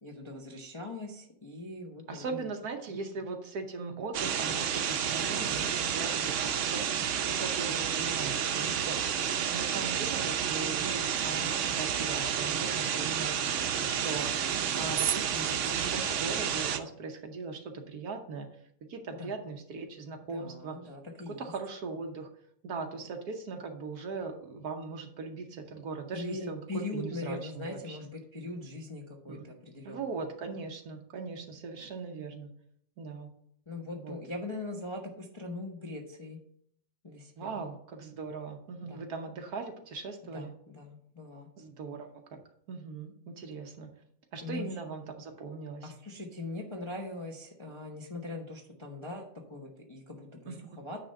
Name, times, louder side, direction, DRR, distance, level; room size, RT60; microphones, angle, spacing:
voice 1, 0.0-2.5 19.2-19.3 20.3-21.5 26.1-29.4 29.6-30.2 33.7-36.4 37.0-37.6 38.8-39.1 40.3-41.5 44.4-44.7 45.8-51.0, left 2 dB, 25° left, 0 dB, 0.7 m, -41 dB
voice 2, 2.1-18.5 18.9-20.8 21.4-22.3 22.6-26.6 26.9-28.0 29.3-29.5 29.8-32.5 33.0-33.3 34.0-34.2 37.4-40.5 41.6-42.4 42.7-43.9 44.3-45.9 50.5-50.6, right 4 dB, 60° right, 4 dB, 1.3 m, -39 dB
sound 1, 4.1-16.8, right 8 dB, 85° right, 0.6 m, -30 dB
9.8 x 3.4 x 6.4 m, 0.69 s
omnidirectional pair, 2.0 m